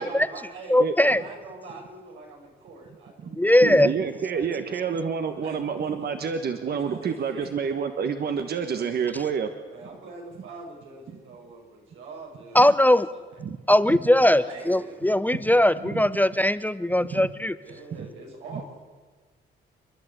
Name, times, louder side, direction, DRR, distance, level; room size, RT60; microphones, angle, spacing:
voice 1, 0.0-4.0 4.3-5.0 5.4-5.9 6.6-7.7 9.7-13.4 14.2-15.0 16.9-17.0 17.6-18.8, right 2 dB, 90° right, 0 dB, 5.7 m, -44 dB
voice 2, 0.7-1.2 3.4-3.9 12.5-13.1 13.7-17.6, left 1 dB, 10° left, 14 dB, 0.6 m, -20 dB
voice 3, 3.2-9.5 13.4-13.6 13.9-14.0 15.8-16.0 17.1-17.3 18.0-18.1 18.5-18.6, right 6 dB, 50° right, 7 dB, 1.4 m, -28 dB
29.0 x 11.0 x 8.0 m, 1.3 s
cardioid pair, 90°, 20 cm